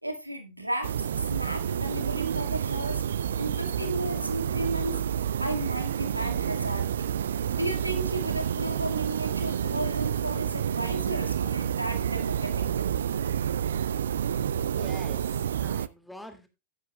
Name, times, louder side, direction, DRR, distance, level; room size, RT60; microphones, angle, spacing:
voice 1, 0.0-5.0 5.4-7.1 7.5-12.9, right 1 dB, 85° right, 1.8 m, -34 dB
sound 1, 0.8-15.9, right 9 dB, 65° right, 0.4 m, -29 dB
voice 2, 14.4-16.5, left 1 dB, ahead, 2.0 m, -46 dB
14.0 x 9.9 x 2.2 m
figure-of-eight pair, 90°, 0 cm